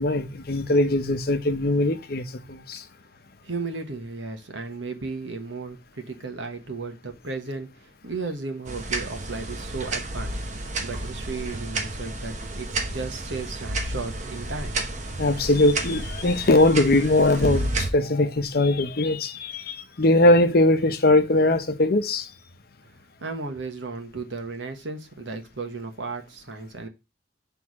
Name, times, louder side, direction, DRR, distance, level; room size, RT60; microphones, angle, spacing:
voice 1, 0.0-2.8 15.2-22.3, left 2 dB, 55° left, 0.7 m, -21 dB
voice 2, 3.4-10.5 10.8-14.8 23.2-26.9, right 3 dB, 80° right, 1.3 m, -34 dB
sound 1, 8.6-17.9, right 2 dB, 40° right, 1.0 m, -31 dB
6.2 x 3.5 x 4.7 m
head